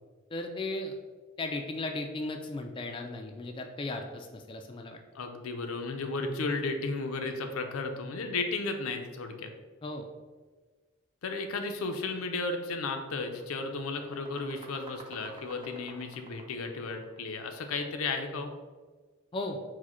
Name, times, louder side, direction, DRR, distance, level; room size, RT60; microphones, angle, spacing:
voice 1, 0.3-1.0 1.4-5.0 9.8-10.1 19.3-19.6, left 2 dB, 25° left, 4 dB, 0.3 m, -36 dB
voice 2, 5.1-9.5 11.2-18.5, left 3 dB, 85° left, 5 dB, 0.5 m, -34 dB
sound 1, 12.3-12.5 12.8-17.8, right 2 dB, 25° right, 0.5 m, -50 dB
4.7 x 2.1 x 4.2 m, 1.4 s
head